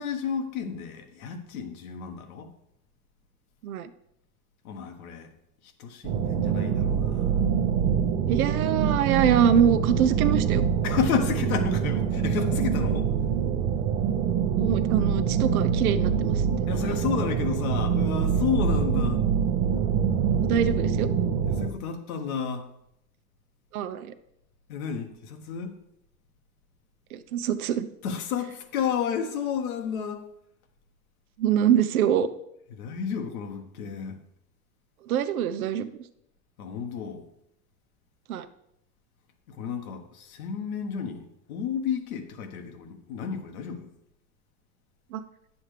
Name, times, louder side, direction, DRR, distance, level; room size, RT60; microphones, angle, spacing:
voice 1, 0.0-2.5 4.6-5.3 5.8-7.3 10.8-13.1 16.7-19.2 21.4-22.7 24.7-25.7 28.0-30.2 32.7-34.1 36.6-37.2 39.5-43.9, left 7 dB, 80° left, 1.3 m, -31 dB
sound 1, 6.0-21.7, right 7 dB, 50° right, 0.8 m, -25 dB
voice 2, 8.3-10.7 14.6-16.7 20.4-21.1 23.7-24.1 27.1-27.9 31.4-32.3 35.1-35.9 38.3-38.5 45.1-45.2, right 9 dB, 80° right, 0.7 m, -24 dB
9.9 x 7.1 x 3.3 m
hypercardioid pair, 90°, 43 cm